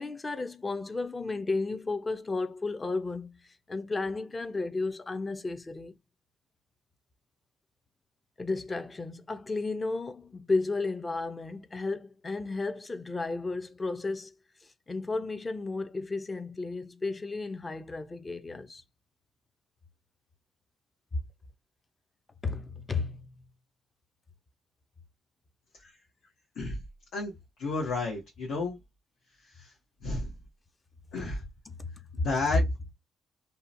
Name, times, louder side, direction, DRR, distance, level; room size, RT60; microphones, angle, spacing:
voice 1, 0.0-3.4 3.7-6.0 8.4-14.3 14.6-18.8 21.1-21.2 22.4-23.2 31.8-31.9 32.2-32.3, left 3 dB, 25° left, 0.5 m, -33 dB
voice 2, 27.6-28.8 29.6-29.7 30.0-30.3 31.1-31.4 32.1-32.6, left 3 dB, 80° left, 0.9 m, -31 dB
2.7 x 2.1 x 2.6 m
cardioid pair, 90°, 0 cm